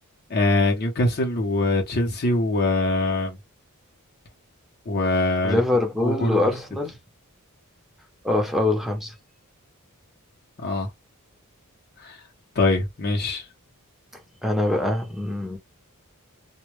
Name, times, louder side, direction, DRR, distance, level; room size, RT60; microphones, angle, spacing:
voice 1, 0.3-3.4 4.9-5.6 6.0-6.5 10.6-10.9 12.0-12.2 12.6-13.5, left 2 dB, 45° left, 0.7 m, -23 dB
voice 2, 5.4-7.0 8.2-9.1 14.1-15.6, left 2 dB, ahead, 0.6 m, -24 dB
2.2 x 2.1 x 3.0 m
head